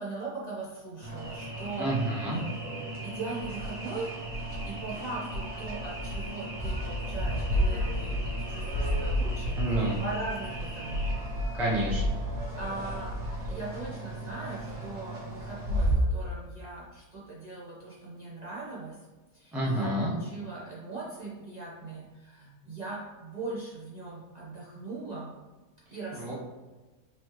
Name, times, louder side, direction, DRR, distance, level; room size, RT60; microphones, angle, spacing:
voice 1, 0.0-1.9 3.0-4.1 4.7-11.1 12.3-13.2 13.5-19.0 19.3-25.3 25.9-26.3, right 3 dB, 35° right, -8 dB, 0.8 m, -40 dB
sound 1, 1.0-15.9, equal, 65° right, 1.6 m, -33 dB
voice 2, 1.8-2.4 9.5-10.0 11.5-12.2 19.5-20.1 26.1-26.3, right 1 dB, ahead, -5 dB, 0.7 m, -29 dB
4.5 x 3.1 x 3.1 m, 1.2 s
omnidirectional pair, 1.5 m